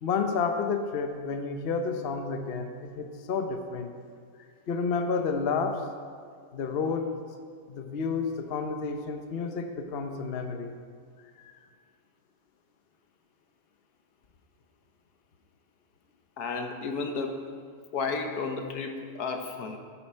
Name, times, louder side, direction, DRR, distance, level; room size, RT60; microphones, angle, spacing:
voice 1, 0.0-3.9 4.7-5.8 6.5-7.1 7.7-10.7 11.4-11.5, left 5 dB, 50° left, 6 dB, 0.9 m, -30 dB
voice 2, 16.4-17.4 17.9-19.8, left 4 dB, 75° left, 4 dB, 1.5 m, -32 dB
13.5 x 8.8 x 4.4 m, 2.1 s
omnidirectional pair, 1.7 m